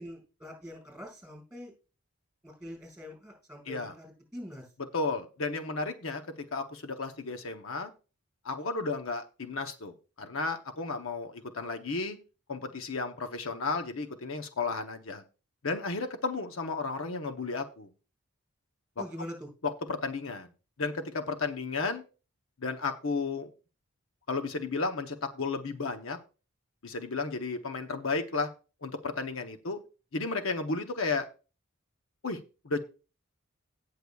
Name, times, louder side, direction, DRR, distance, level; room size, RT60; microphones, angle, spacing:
voice 1, 0.0-1.7 2.4-4.7 19.0-19.5, equal, 5° right, 2 dB, 4.9 m, -44 dB
voice 2, 4.9-6.2 6.5-7.9 8.4-12.2 12.5-15.2 15.6-17.9 19.0-19.3 19.6-20.5 20.8-22.0 22.6-23.5 24.3-26.2 26.8-28.5 28.8-29.8 30.1-31.3 32.2-32.4 32.6-32.8, left 3 dB, 70° left, 6 dB, 0.8 m, -33 dB
17.5 x 6.6 x 2.3 m, 0.34 s
head